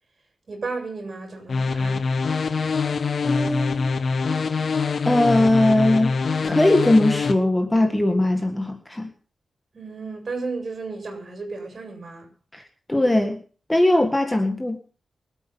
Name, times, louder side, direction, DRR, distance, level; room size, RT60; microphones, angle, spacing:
voice 1, 0.5-2.0 9.7-12.3, right 3 dB, 40° right, 7.2 m, -33 dB
sound 1, 1.5-7.3, left 4 dB, 55° left, 1.5 m, -24 dB
voice 2, 3.3-3.9 5.1-9.1 12.5-12.6 12.9-13.4 13.7-14.8, left 1 dB, 10° left, 1.8 m, -20 dB
24.0 x 8.8 x 5.6 m
wide cardioid pair, 160°, 0 cm